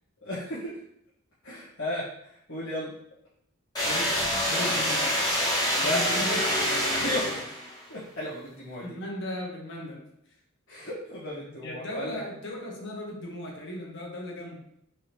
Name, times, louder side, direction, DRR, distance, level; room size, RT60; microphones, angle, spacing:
voice 1, 0.2-0.8 1.4-2.9 5.7-6.0 6.9-7.4 7.9-8.9 10.7-12.2, left 1 dB, 80° left, -11 dB, 1.5 m, -34 dB
sound 1, 3.7-7.8, equal, 20° left, 1.3 m, -26 dB
voice 2, 3.8-5.2 5.8-6.9 7.2-7.4 8.8-10.0 11.6-14.6, left 1 dB, 60° left, -1 dB, 1.3 m, -37 dB
4.7 x 3.4 x 3.1 m, 0.72 s
head